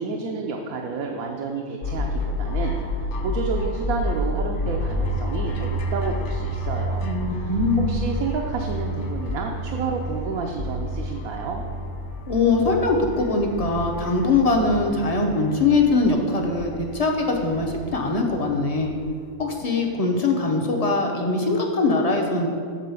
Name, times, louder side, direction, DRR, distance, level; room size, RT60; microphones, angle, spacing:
voice 1, 0.0-2.7 3.2-7.5 7.9-11.6, right 4 dB, 80° right, 1 dB, 1.1 m, -30 dB
sound 1, 1.8-19.3, equal, 60° left, 1.0 m, -30 dB
voice 2, 7.0-7.9 12.3-18.9 19.4-22.5, left 3 dB, 35° left, 1 dB, 0.7 m, -22 dB
7.6 x 4.1 x 6.8 m, 2.2 s
omnidirectional pair, 1.5 m